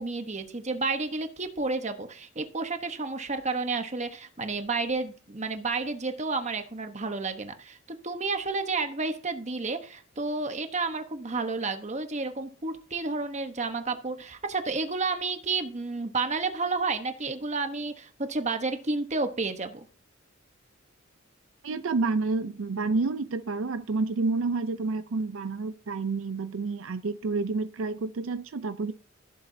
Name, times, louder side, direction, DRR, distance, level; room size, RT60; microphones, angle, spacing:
voice 1, 0.0-19.8, right 3 dB, 35° right, 1.0 m, -31 dB
voice 2, 21.6-28.9, right 3 dB, 75° right, 0.5 m, -29 dB
15.5 x 7.3 x 2.7 m
head